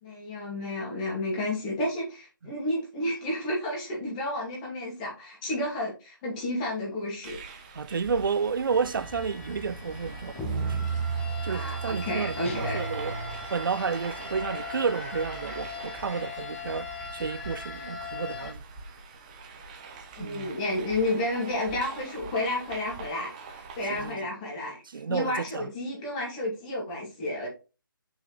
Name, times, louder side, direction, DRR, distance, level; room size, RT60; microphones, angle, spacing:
voice 1, 0.0-7.4 11.5-12.9 20.2-24.8 25.1-27.5, left 1 dB, 20° left, 2.7 m, -31 dB
sound 1, 7.2-24.1, right 4 dB, 20° right, 1.0 m, -44 dB
voice 2, 7.7-11.0 11.4-13.2 13.5-18.6 20.2-20.5 23.9-24.2 24.9-25.7, right 5 dB, 70° right, 0.5 m, -31 dB
sound 2, 8.7-18.5, right 1 dB, 5° left, 0.5 m, -36 dB
sound 3, 12.4-13.8, right 1 dB, 35° left, 1.5 m, -37 dB
6.1 x 6.1 x 3.3 m
hypercardioid pair, 165°, 12 cm